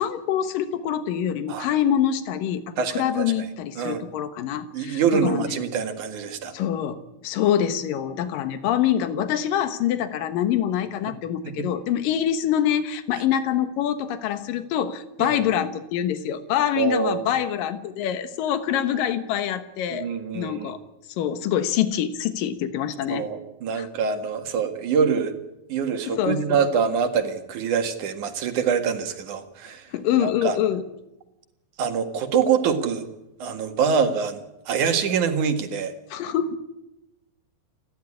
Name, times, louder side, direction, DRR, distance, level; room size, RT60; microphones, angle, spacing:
voice 1, 0.0-5.6 6.5-20.1 20.3-20.8 21.2-23.3 23.8-23.9 26.1-26.6 29.9-30.8 36.1-36.6, left 10 dB, 85° left, 11 dB, 3.0 m, -25 dB
voice 2, 2.8-3.5 3.8-4.0 4.7-6.5 11.4-11.7 15.2-15.4 16.8-17.3 19.9-20.7 23.1-25.3 25.7-29.9 30.2-30.6 31.8-33.1 33.4-35.9, right 6 dB, 65° right, 7 dB, 3.2 m, -25 dB
29.0 x 12.0 x 9.8 m, 0.93 s
omnidirectional pair, 3.8 m